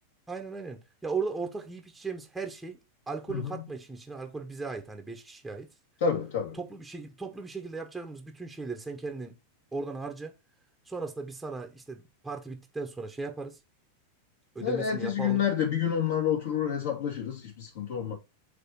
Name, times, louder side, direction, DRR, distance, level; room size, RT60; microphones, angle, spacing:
voice 1, 0.3-2.8 3.1-5.7 6.6-9.3 9.7-10.3 10.9-13.6 14.5-15.4, right 4 dB, 5° right, 1.1 m, -37 dB
voice 2, 6.0-6.6 14.6-18.1, left 8 dB, 50° left, 2.4 m, -28 dB
7.9 x 3.0 x 4.4 m
figure-of-eight pair, 90°, 0 cm